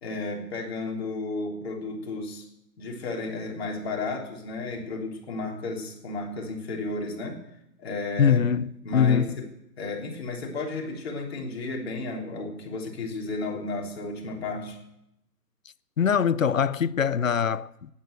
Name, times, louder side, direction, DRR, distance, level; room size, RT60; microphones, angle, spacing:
voice 1, 0.0-2.5 2.8-7.4 7.8-8.5 8.8-9.5 9.8-14.8, left 3 dB, 40° left, 3.4 m, -33 dB
voice 2, 8.2-9.3 16.0-17.9, left 7 dB, 55° left, 0.6 m, -23 dB
12.5 x 9.7 x 9.2 m
figure-of-eight pair, 150°, 49 cm